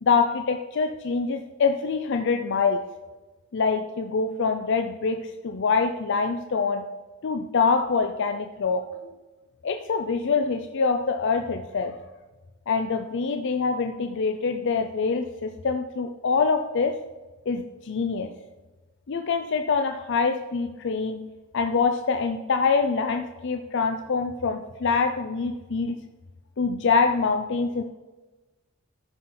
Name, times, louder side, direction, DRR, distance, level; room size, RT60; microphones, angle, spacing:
voice 1, 0.0-2.8 3.5-6.9 7.2-8.9 9.6-12.0 12.7-17.0 17.5-18.3 19.1-26.0 26.6-27.8, left 5 dB, 60° left, 6 dB, 0.5 m, -25 dB
14.0 x 5.8 x 3.9 m, 1.2 s
head